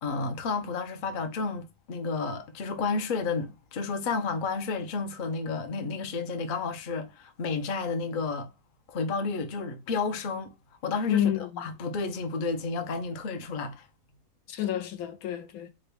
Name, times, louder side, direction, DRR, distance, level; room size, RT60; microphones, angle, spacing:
voice 1, 0.0-8.5 8.9-10.5 10.8-11.3 11.6-13.8, left 4 dB, 55° left, 0.6 m, -31 dB
voice 2, 11.1-11.7 14.5-15.7, left 11 dB, 80° left, 1.1 m, -29 dB
3.8 x 2.2 x 3.3 m
omnidirectional pair, 1.5 m